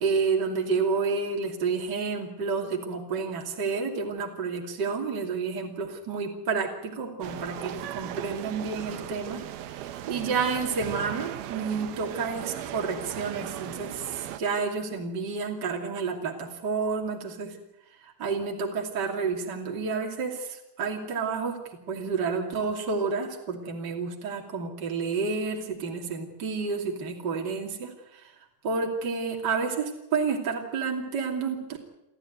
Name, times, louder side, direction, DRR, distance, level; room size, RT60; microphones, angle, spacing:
voice 1, 0.0-17.6 18.0-21.6 21.9-28.3 28.6-31.8, right 5 dB, 30° right, 1 dB, 2.9 m, -30 dB
sound 1, 7.2-14.4, right 11 dB, 90° right, 3.0 m, -37 dB
29.0 x 13.5 x 9.4 m, 0.90 s
omnidirectional pair, 4.3 m